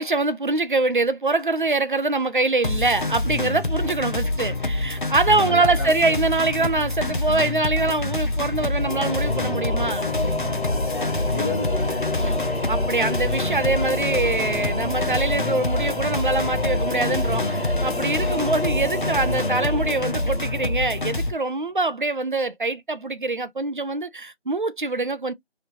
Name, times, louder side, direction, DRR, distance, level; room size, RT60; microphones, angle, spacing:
voice 1, 0.0-10.1 12.2-12.4 12.7-25.3, right 3 dB, 50° right, 0.4 m, -24 dB
sound 1, 2.6-21.3, left 2 dB, 50° left, 0.6 m, -26 dB
voice 2, 5.4-6.2 10.7-12.4 18.2-18.5, left 2 dB, 20° left, 1.3 m, -33 dB
Singing / Musical instrument, 8.7-21.3, left 2 dB, 65° left, 1.2 m, -29 dB
3.1 x 2.8 x 2.6 m
figure-of-eight pair, 165°, 33 cm